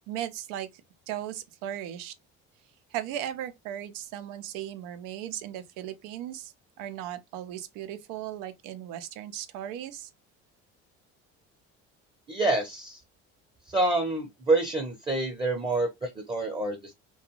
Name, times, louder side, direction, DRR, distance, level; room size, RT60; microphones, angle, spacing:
voice 1, 0.1-0.7 1.1-2.1 2.9-10.1, right 11 dB, 90° right, 0.5 m, -37 dB
voice 2, 12.3-13.0 13.7-16.9, right 2 dB, 15° right, 0.6 m, -27 dB
2.4 x 2.3 x 2.9 m
cardioid pair, 100°, 30 cm